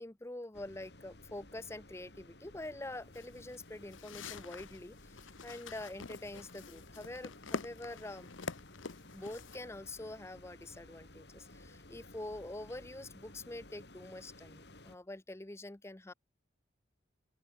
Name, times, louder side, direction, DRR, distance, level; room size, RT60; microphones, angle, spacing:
voice 1, 0.0-8.3 9.1-16.1, left 1 dB, 15° left, 0.6 m, -45 dB
sound 1, 0.5-15.0, left 2 dB, 60° left, 3.1 m, -56 dB
sound 2, 3.1-9.6, left 4 dB, 90° left, 1.1 m, -46 dB
open air
head